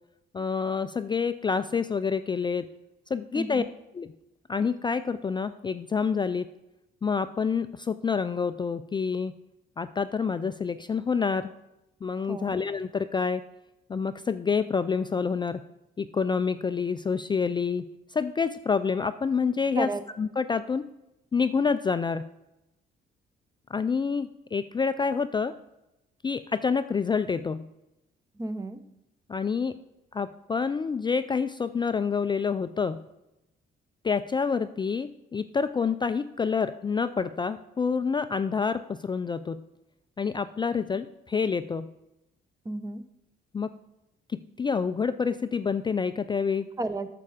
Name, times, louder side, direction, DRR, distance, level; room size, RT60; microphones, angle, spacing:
voice 1, 0.3-2.7 3.1-3.6 3.9-4.1 4.5-6.5 7.0-9.3 9.8-11.5 12.0-13.4 13.9-15.6 16.0-17.8 18.1-19.9 20.2-20.9 21.3-22.3 23.7-25.5 26.2-27.7 29.3-29.8 30.1-33.0 34.0-39.6 40.2-41.9 43.5-43.7 44.3-46.7, left 5 dB, 25° left, 11 dB, 0.3 m, -27 dB
voice 2, 3.3-3.7 12.3-12.5 19.7-20.0 28.4-28.8 42.6-43.0 46.8-47.1, right 2 dB, 15° right, 11 dB, 0.8 m, -32 dB
8.3 x 6.8 x 4.9 m, 0.89 s
cardioid pair, 90°, 20 cm